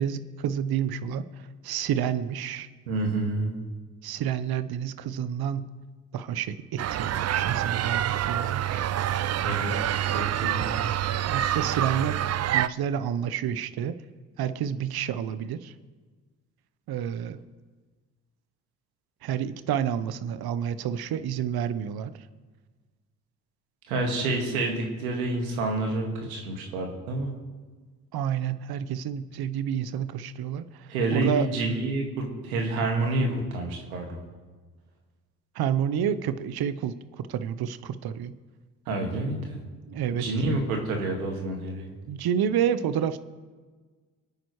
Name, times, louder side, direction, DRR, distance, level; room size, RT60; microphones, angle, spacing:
voice 1, 0.0-2.7 4.0-5.7 6.1-8.8 11.3-12.2 12.5-14.0 14.4-15.7 16.9-17.4 19.2-22.1 28.1-31.5 35.5-38.3 39.9-40.3 42.1-43.2, right 9 dB, 60° right, 12 dB, 0.9 m, -29 dB
voice 2, 2.9-3.6 9.4-11.0 23.9-27.4 30.9-34.2 38.9-39.6 40.1-41.9, right 2 dB, 90° right, 2 dB, 2.0 m, -28 dB
sound 1, 6.8-12.7, right 11 dB, 40° right, 0.5 m, -27 dB
26.0 x 9.1 x 3.2 m, 1.4 s
hypercardioid pair, 45°, 42 cm